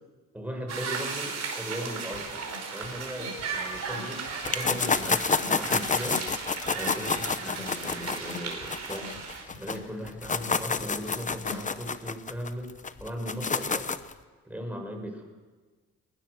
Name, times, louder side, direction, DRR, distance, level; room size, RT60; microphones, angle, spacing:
voice 1, 0.3-2.4 2.7-13.9 14.4-15.2, equal, 5° right, 1 dB, 5.9 m, -38 dB
sound 1, 0.7-9.4, right 5 dB, 60° right, 4.9 m, -36 dB
sound 2, 2.1-11.7, left 4 dB, 85° left, 5.6 m, -45 dB
sound 3, 4.4-9.8 10.1-14.1, left 5 dB, 25° left, 0.9 m, -29 dB
21.0 x 20.0 x 6.7 m, 1.4 s
cardioid pair, 90°, 30 cm